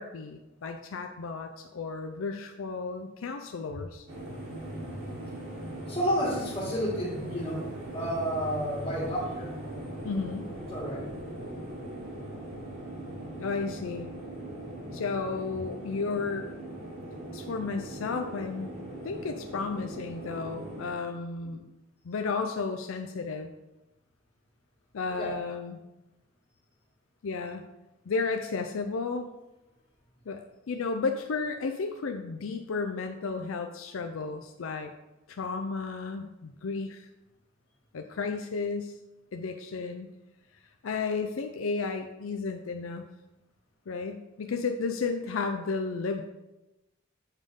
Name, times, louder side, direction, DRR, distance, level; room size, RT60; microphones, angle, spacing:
voice 1, 0.0-4.1 10.0-10.5 13.4-14.1 14.9-16.5 17.3-18.7 19.0-21.6 22.0-23.5 24.9-25.8 27.2-27.6 28.1-29.3 30.3-34.9 35.3-37.1 37.9-38.9 39.3-40.1 40.8-43.0 43.9-46.2, left 4 dB, 75° left, 5 dB, 0.5 m, -33 dB
sound 1, 4.1-20.9, right 1 dB, 75° right, 2.4 m, -40 dB
voice 2, 5.9-7.7 7.9-9.5 10.7-11.1 25.2-25.4, equal, 30° left, -5 dB, 2.1 m, -30 dB
7.2 x 3.6 x 5.3 m, 0.98 s
head